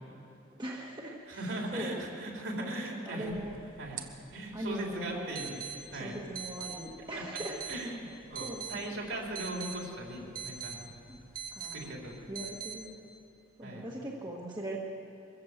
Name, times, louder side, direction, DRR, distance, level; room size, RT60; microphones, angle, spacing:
voice 1, 0.6-2.0 2.3-3.6 4.5-5.5 5.9-7.6 8.4-8.8 11.1-11.2 11.5-11.9 12.3-13.1 13.6-14.8, right 1 dB, 20° right, -3 dB, 1.6 m, -40 dB
voice 2, 1.4-3.3 3.8-4.0 4.3-5.6 5.9-6.2 7.7-10.8 11.6-12.2 13.6-13.9, right 1 dB, 65° right, -1 dB, 4.0 m, -39 dB
sound 1, 3.3-12.8, right 7 dB, 45° right, 1.2 m, -44 dB
23.0 x 15.0 x 7.5 m, 2.8 s
head